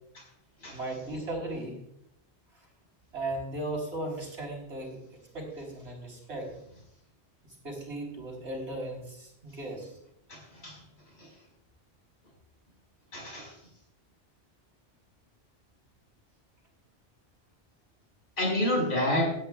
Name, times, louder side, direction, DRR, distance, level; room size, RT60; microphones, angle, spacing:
voice 1, 0.7-1.8 3.1-5.0 5.3-6.5 7.4-10.0, right 2 dB, 80° right, 0 dB, 4.8 m, -36 dB
voice 2, 10.3-10.8 13.1-13.5 18.4-19.3, left 1 dB, 70° left, -1 dB, 6.2 m, -28 dB
18.0 x 13.0 x 2.4 m, 0.76 s
omnidirectional pair, 1.1 m